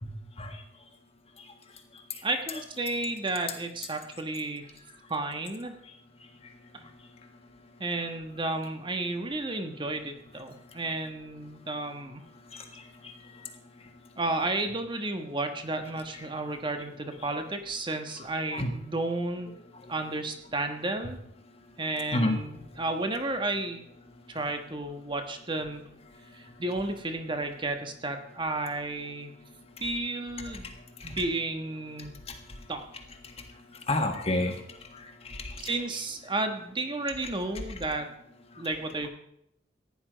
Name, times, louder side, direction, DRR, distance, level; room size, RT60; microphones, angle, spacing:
voice 1, 2.2-4.7 5.1-5.8 6.7-6.9 7.8-12.2 14.2-19.5 19.9-21.2 21.8-23.9 24.3-25.9 26.3-29.3 29.8-30.7 31.0-32.1 32.7-32.8 35.6-38.2 38.6-39.1, right 2 dB, 25° right, 6 dB, 1.4 m, -32 dB
voice 2, 12.5-13.1 16.1-16.2 18.5-18.7 22.1-22.4 30.5-30.6 31.0-31.1 33.9-34.6 34.9-35.5, left 1 dB, 35° left, 4 dB, 1.7 m, -30 dB
15.0 x 10.0 x 5.2 m, 0.74 s
head